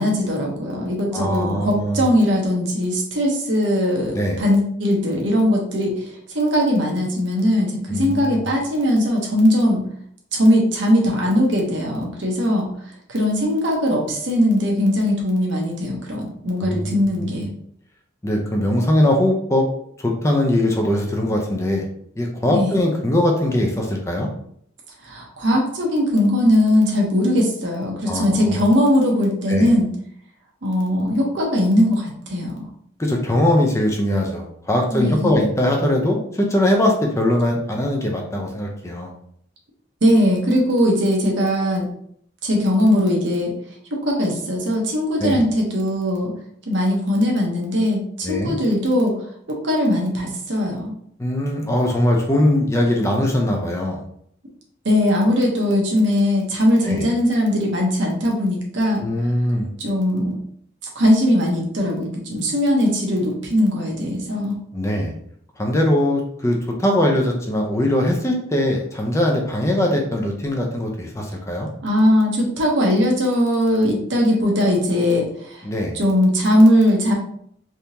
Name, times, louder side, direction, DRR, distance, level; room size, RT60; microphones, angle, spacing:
voice 1, 0.0-9.8 10.3-12.7 13.1-17.5 22.5-22.8 25.0-29.9 30.6-32.5 34.9-35.4 40.0-41.9 42.4-43.5 43.9-46.3 46.7-49.1 49.5-50.9 54.8-59.0 59.8-60.4 60.9-64.6 71.8-75.6 75.9-77.1, equal, 70° right, -1 dB, 0.9 m, -19 dB
voice 2, 1.1-2.1 4.1-4.4 7.9-8.4 16.6-17.4 18.2-19.7 20.0-21.9 22.2-24.3 28.1-28.6 29.5-29.7 33.0-39.1 45.2-45.4 48.2-48.5 51.2-54.0 56.8-57.0 59.0-59.7 64.7-65.1 65.6-71.7 75.6-76.0, left 1 dB, 15° left, 1 dB, 0.5 m, -21 dB
3.5 x 2.7 x 2.8 m, 0.66 s
head